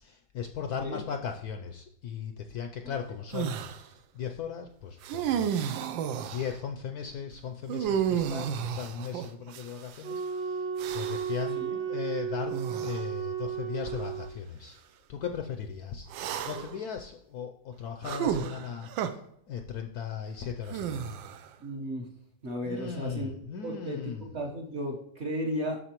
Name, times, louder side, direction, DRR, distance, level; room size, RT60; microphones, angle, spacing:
voice 1, 0.0-5.7 6.3-14.8 15.1-19.2 19.5-21.2 22.6-24.3, left 7 dB, 70° left, 6 dB, 0.9 m, -38 dB
sound 1, 3.3-3.8 5.0-6.6 7.7-10.0 10.8-11.4 12.5-13.0 13.9-14.0 16.1-16.8 18.0-19.1 20.7-21.5, right 9 dB, 85° right, 1.4 m, -32 dB
Wind instrument woodwind instrument, 10.0-14.3, right 8 dB, 60° right, 1.7 m, -34 dB
voice 2, 21.6-22.1 22.4-23.3 23.6-25.8, equal, 45° right, 0 dB, 1.1 m, -34 dB
11.5 x 4.1 x 2.9 m, 0.74 s
omnidirectional pair, 2.0 m